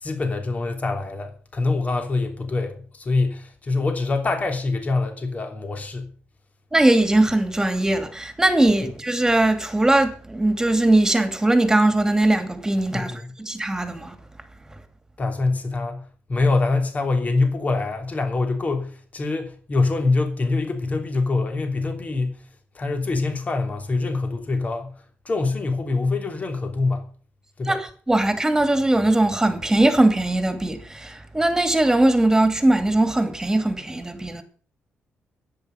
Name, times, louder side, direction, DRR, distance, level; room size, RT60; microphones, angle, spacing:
voice 1, 0.0-6.1 12.9-13.3 15.2-22.4 22.7-24.9 25.2-27.0 27.6-27.8, left 3 dB, 35° left, 3.0 m, -24 dB
voice 2, 6.7-14.1 27.6-34.4, right 1 dB, 15° right, 2.6 m, -20 dB
10.5 x 9.0 x 8.1 m
cardioid pair, 95°, 4 cm